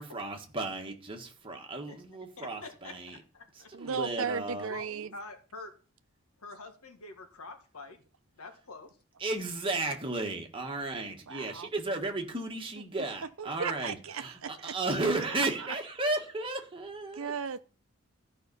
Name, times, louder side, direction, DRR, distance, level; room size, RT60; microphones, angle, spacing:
voice 1, 0.0-3.2 3.7-4.7 9.2-17.3, right 2 dB, 25° right, 1.6 m, -34 dB
voice 2, 2.4-3.7 4.7-5.7 6.4-8.0 8.3-8.9, left 3 dB, 85° left, 1.7 m, -46 dB
voice 3, 3.7-5.1 11.3-11.7 13.4-14.7 15.6-15.7 17.1-17.6, right 6 dB, 65° right, 0.7 m, -36 dB
14.0 x 5.5 x 5.5 m
head